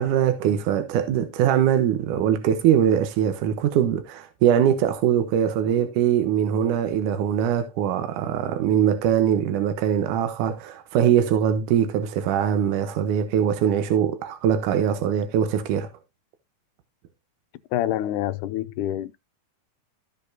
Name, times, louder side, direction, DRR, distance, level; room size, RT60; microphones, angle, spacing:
voice 1, 0.0-15.9, right 9 dB, 80° right, 2.5 m, -22 dB
voice 2, 17.7-19.2, left 13 dB, 85° left, 2.2 m, -26 dB
15.0 x 5.2 x 2.7 m
omnidirectional pair, 3.7 m